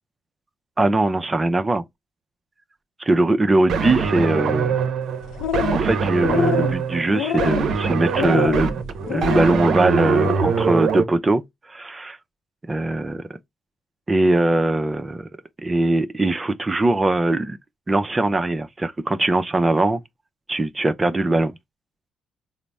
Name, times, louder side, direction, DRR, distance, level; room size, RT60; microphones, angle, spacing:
voice 1, 0.8-1.8 3.0-4.7 5.7-8.8 9.1-11.4 11.7-12.2 12.7-13.2 14.1-15.3 15.6-17.6 17.9-20.0 20.5-21.5, right 2 dB, 25° right, 0.5 m, -21 dB
sound 1, 3.7-11.0, right 6 dB, 65° right, 0.6 m, -23 dB
sound 2, 5.2-5.9 6.2-6.7 7.1-7.7 8.2-8.7 9.1-9.5 9.9-10.4, left 8 dB, 80° left, 0.6 m, -26 dB
4.0 x 2.0 x 3.3 m
supercardioid pair, 70°, 0 cm